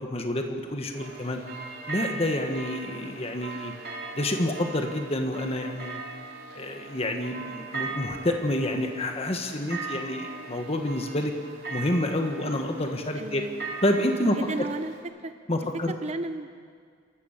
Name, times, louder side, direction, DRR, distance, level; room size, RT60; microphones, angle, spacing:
voice 1, 0.0-1.4 1.9-3.7 4.1-6.0 6.5-11.3 11.7-13.4 13.8-14.7 15.5-15.9, left 1 dB, 30° left, 4 dB, 1.4 m, -28 dB
sound 1, 0.9-15.0, right 4 dB, 55° right, 2.9 m, -39 dB
voice 2, 13.2-13.7 14.3-14.9 15.2-15.3 15.7-16.5, right 2 dB, 35° right, 10 dB, 0.6 m, -34 dB
27.0 x 14.5 x 6.7 m, 2.1 s
head